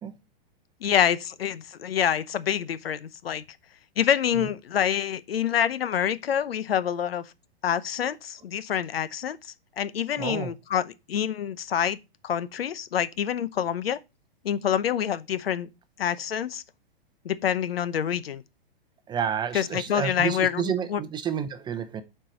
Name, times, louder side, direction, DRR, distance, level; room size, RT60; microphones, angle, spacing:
voice 1, 0.8-3.4 4.0-7.3 7.6-12.0 12.2-14.0 14.4-15.7 16.0-16.6 17.2-18.4 19.5-21.0, left 9 dB, 80° left, 0.9 m, -27 dB
voice 2, 10.2-10.5 19.1-22.0, right 8 dB, 15° right, 0.7 m, -30 dB
7.3 x 4.6 x 5.1 m
hypercardioid pair, 125°, 30 cm